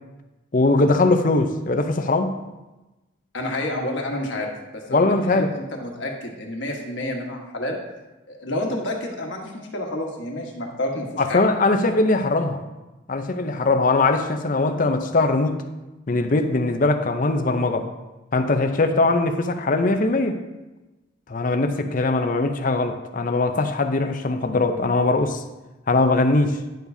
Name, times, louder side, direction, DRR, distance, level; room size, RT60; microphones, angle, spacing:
voice 1, 0.5-2.4 4.9-5.5 11.2-12.6 13.1-15.6 16.1-17.9 18.3-20.4 21.3-25.4 25.9-26.6, left 2 dB, 40° left, 7 dB, 0.6 m, -21 dB
voice 2, 3.3-7.8 8.3-11.4, left 1 dB, 60° left, 0 dB, 1.4 m, -29 dB
10.5 x 7.0 x 2.7 m, 1.1 s
head